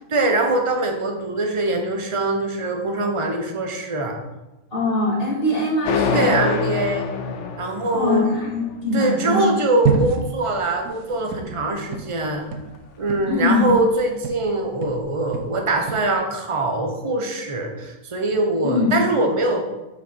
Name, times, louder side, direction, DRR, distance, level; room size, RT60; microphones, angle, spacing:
voice 1, 0.1-4.2 6.1-7.1 7.6-8.3 8.9-12.4 13.0-19.7, right 2 dB, 25° right, 3 dB, 0.8 m, -23 dB
voice 2, 4.7-6.4 7.9-9.5 13.3-13.7 18.6-18.9, left 2 dB, 35° left, -6 dB, 2.6 m, -22 dB
sound 1, 5.9-8.8, left 6 dB, 60° left, 0.9 m, -25 dB
sound 2, 9.8-14.5 14.8-16.1, right 7 dB, 80° right, 1.2 m, -28 dB
6.4 x 5.3 x 4.5 m, 1.0 s
omnidirectional pair, 1.7 m